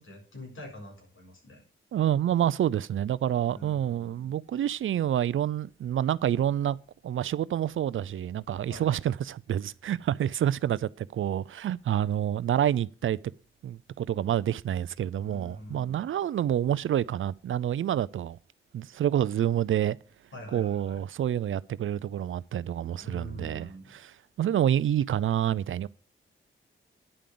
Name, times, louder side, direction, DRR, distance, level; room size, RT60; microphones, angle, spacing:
voice 1, 0.0-1.6 3.4-4.3 8.7-8.9 15.2-16.1 20.3-21.0 23.0-24.0, left 1 dB, 70° left, 4.5 m, -45 dB
voice 2, 1.9-6.8 7.0-13.2 13.6-18.4 18.7-20.0 20.5-24.0 24.4-25.9, right 10 dB, 70° right, 0.5 m, -28 dB
10.0 x 5.1 x 7.7 m
cardioid pair, 55°, 21 cm